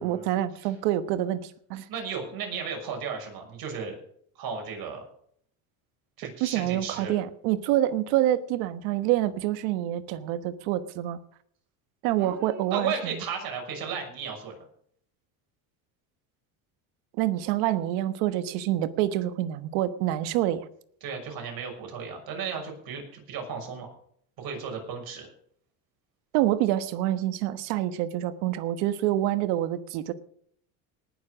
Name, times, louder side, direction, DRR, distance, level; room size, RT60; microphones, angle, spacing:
voice 1, 0.0-1.8 6.4-11.2 12.0-13.1 17.1-20.6 26.3-30.1, right 13 dB, 80° right, 13 dB, 1.3 m, -27 dB
voice 2, 1.9-3.9 4.4-5.0 6.2-7.1 12.2-14.5 21.0-23.9 24.4-25.3, right 6 dB, 60° right, 2 dB, 6.4 m, -35 dB
19.0 x 7.2 x 6.3 m, 0.64 s
supercardioid pair, 105°, 41 cm